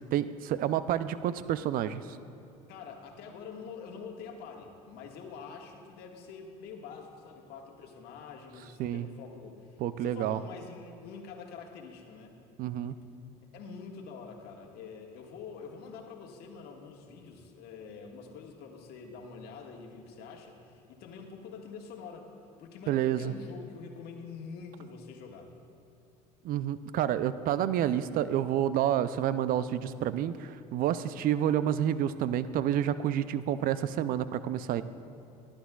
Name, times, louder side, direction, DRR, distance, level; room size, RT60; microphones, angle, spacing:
voice 1, 0.0-2.0 8.8-9.1 9.8-10.4 12.6-13.0 22.9-23.3 26.4-34.8, right 10 dB, 55° right, 14 dB, 0.5 m, -29 dB
voice 2, 2.7-12.3 12.8-13.1 13.5-22.3 22.6-25.5, left 5 dB, 65° left, 1 dB, 1.6 m, -46 dB
19.0 x 11.5 x 2.3 m, 2.8 s
hypercardioid pair, 80°, 18 cm